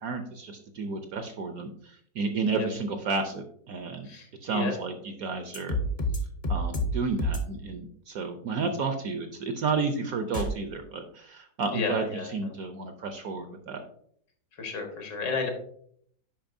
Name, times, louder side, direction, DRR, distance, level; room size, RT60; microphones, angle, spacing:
voice 1, 0.0-4.1 4.4-5.8 6.5-12.1 12.3-13.8, right 4 dB, 65° right, 7 dB, 0.9 m, -31 dB
voice 2, 4.0-4.7 11.7-12.3 14.5-15.5, left 4 dB, 75° left, 3 dB, 2.0 m, -32 dB
sound 1, 5.5-6.2 6.4-6.9 7.2-7.4 10.3-10.5, left 1 dB, 40° left, 0.5 m, -27 dB
8.8 x 5.4 x 2.6 m, 0.65 s
omnidirectional pair, 2.0 m